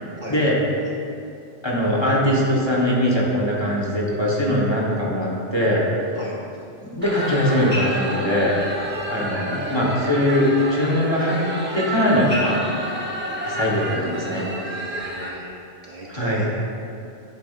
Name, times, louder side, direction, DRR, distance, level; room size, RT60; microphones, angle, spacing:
voice 1, 1.6-5.8 6.8-8.5 9.1-11.5 11.7-12.6 13.4-14.5 16.1-16.4, left 1 dB, 25° left, -5 dB, 1.3 m, -21 dB
sound 1, 7.0-15.3, equal, 10° right, 0.9 m, -29 dB
voice 2, 14.6-15.5 15.8-16.8, equal, 45° right, -4 dB, 1.1 m, -35 dB
11.0 x 8.3 x 2.6 m, 2.6 s
omnidirectional pair, 1.2 m